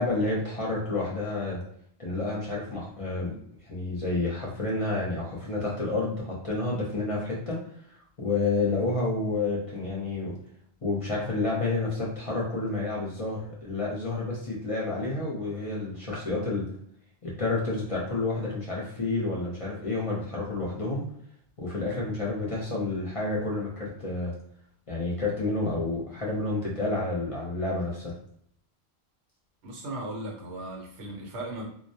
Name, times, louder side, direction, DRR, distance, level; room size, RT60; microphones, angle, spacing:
voice 1, 0.0-1.6 2.0-3.3 3.7-7.6 8.2-10.3 10.8-16.7 17.2-21.0 21.6-24.3 24.9-28.1, left 2 dB, 40° left, -4 dB, 0.6 m, -29 dB
voice 2, 29.6-31.6, right 1 dB, 90° right, -1 dB, 1.0 m, -37 dB
2.2 x 2.1 x 2.7 m, 0.69 s
omnidirectional pair, 1.1 m